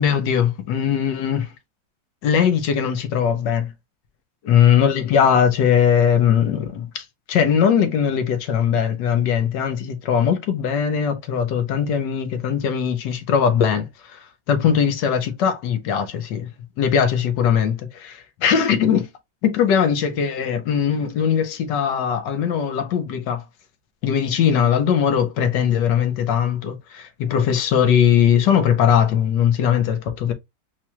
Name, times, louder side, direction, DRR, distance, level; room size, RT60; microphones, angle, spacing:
voice 1, 0.0-1.5 2.2-3.7 4.4-16.5 16.8-19.1 19.4-23.4 24.0-30.3, left 8 dB, 70° left, 1.3 m, -20 dB
4.4 x 2.3 x 2.8 m
omnidirectional pair, 2.1 m